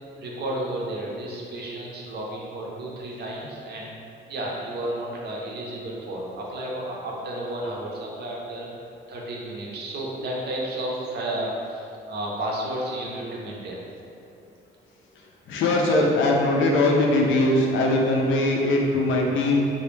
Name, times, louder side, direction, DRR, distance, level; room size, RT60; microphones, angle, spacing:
voice 1, 0.2-4.0 4.3-8.7 9.1-13.8, right 1 dB, 55° right, -3 dB, 0.6 m, -32 dB
voice 2, 15.5-19.7, left 2 dB, 75° left, -1 dB, 0.4 m, -21 dB
2.1 x 2.1 x 3.1 m, 2.7 s
cardioid pair, 90°, 20 cm